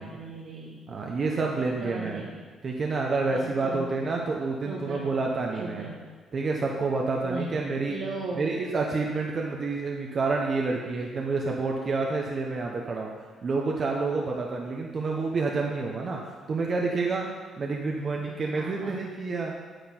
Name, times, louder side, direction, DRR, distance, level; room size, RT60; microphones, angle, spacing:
voice 1, 0.0-0.8 1.6-2.5 3.3-3.9 4.6-5.1 5.6-6.1 7.2-7.5 7.9-8.7 18.2-19.0, right 3 dB, 85° right, -6 dB, 1.7 m, -38 dB
voice 2, 0.9-2.2 2.6-5.8 6.3-8.0 8.4-13.1 13.4-16.2 16.5-17.3 17.6-19.5, right 3 dB, 45° right, 0 dB, 1.0 m, -28 dB
9.2 x 8.4 x 4.6 m, 1.5 s
cardioid pair, 90°, 0 cm